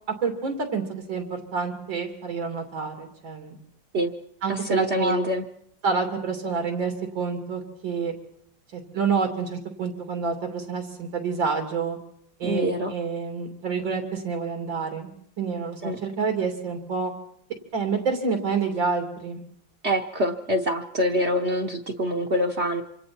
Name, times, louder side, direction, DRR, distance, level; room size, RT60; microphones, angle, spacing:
voice 1, 0.2-3.6 4.4-5.2 5.8-8.1 8.7-12.0 12.4-15.1 15.4-17.1 17.7-19.4, right 5 dB, 90° right, 4 dB, 3.6 m, -28 dB
voice 2, 4.5-5.4 12.4-12.9 15.8-16.0 19.8-22.8, equal, 45° right, 2 dB, 1.0 m, -25 dB
27.5 x 25.0 x 4.5 m, 0.68 s
omnidirectional pair, 2.0 m